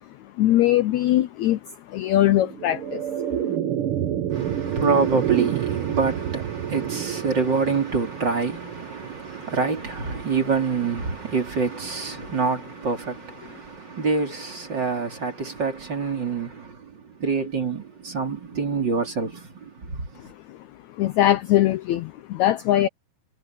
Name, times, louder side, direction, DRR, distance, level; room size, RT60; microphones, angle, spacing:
voice 1, 0.2-3.2 12.2-12.3 20.2-20.6 20.9-22.9, left 13 dB, 80° left, 1.7 m, -22 dB
sound 1, 2.3-12.8, right 10 dB, 80° right, 1.2 m, -30 dB
voice 2, 4.3-20.3, right 4 dB, 30° right, 3.5 m, -26 dB
omnidirectional pair, 4.1 m